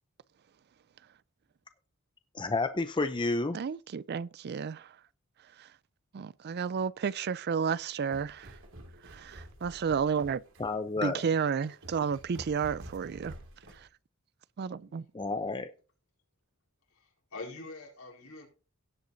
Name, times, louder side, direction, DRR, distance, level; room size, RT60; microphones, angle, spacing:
voice 1, 2.3-3.6 10.6-11.2 15.1-15.7, left 3 dB, 20° left, 0.6 m, -30 dB
voice 2, 3.5-4.8 6.1-8.5 9.2-10.4 11.0-13.3 14.6-15.0, right 6 dB, 50° right, 0.4 m, -31 dB
sound 1, 7.8-13.9, right 1 dB, 65° right, 2.3 m, -49 dB
voice 3, 16.9-18.5, left 3 dB, 75° left, 4.4 m, -45 dB
17.0 x 8.0 x 2.7 m
head